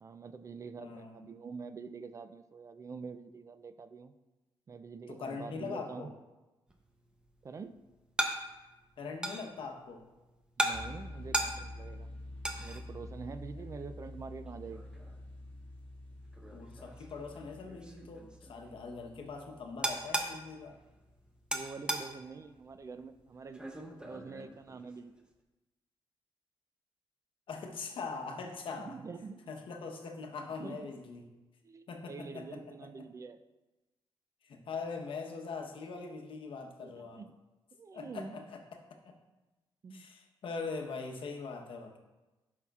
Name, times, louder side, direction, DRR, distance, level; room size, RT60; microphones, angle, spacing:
voice 1, 0.0-4.1 4.7-6.1 7.4-7.7 10.6-12.1 12.6-14.9 21.5-23.6 24.0-25.2 28.7-29.5 30.6-30.8 31.6-33.4 36.6-37.3 37.8-38.4 39.8-40.1, right 4 dB, 35° right, 10 dB, 0.3 m, -46 dB
voice 2, 0.8-1.2 5.1-6.1 9.0-10.0 13.5-13.6 16.5-20.8 27.5-29.0 29.5-31.3 31.9-32.6 33.0-33.1 34.4-37.2 37.9-39.2 39.9-42.0, left 4 dB, 65° left, 3 dB, 1.0 m, -42 dB
sound 1, 6.7-25.2, right 1 dB, 10° right, 0.7 m, -40 dB
sound 2, 10.7-21.6, left 1 dB, 15° left, 1.5 m, -48 dB
12.0 x 5.6 x 2.4 m, 1.1 s
wide cardioid pair, 140°, 10 cm